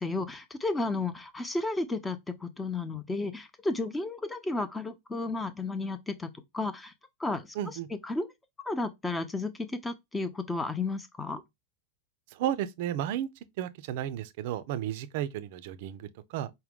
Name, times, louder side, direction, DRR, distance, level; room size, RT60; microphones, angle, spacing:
voice 1, 0.0-6.9 7.2-7.5 8.0-8.3 8.7-11.4, left 3 dB, 10° left, 0.7 m, -33 dB
voice 2, 7.5-7.9 12.3-13.3 13.6-16.5, right 11 dB, 50° right, 0.5 m, -33 dB
5.5 x 2.2 x 3.5 m
figure-of-eight pair, 90°, 0 cm